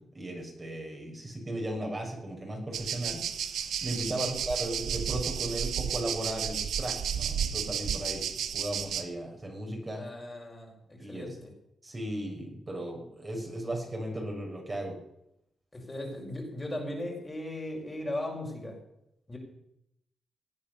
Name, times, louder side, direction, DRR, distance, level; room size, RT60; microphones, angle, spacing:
voice 1, 0.1-3.2 3.8-8.2 8.5-10.1 11.0-11.4 11.8-15.0, right 1 dB, 30° right, 0 dB, 6.1 m, -36 dB
sound 1, 2.7-9.0, right 8 dB, 85° right, 1.2 m, -32 dB
voice 2, 9.9-11.5 15.7-18.8 19.3-19.4, left 1 dB, 25° left, 0 dB, 5.7 m, -37 dB
18.5 x 8.9 x 6.9 m, 0.79 s
cardioid pair, 65°, 0 cm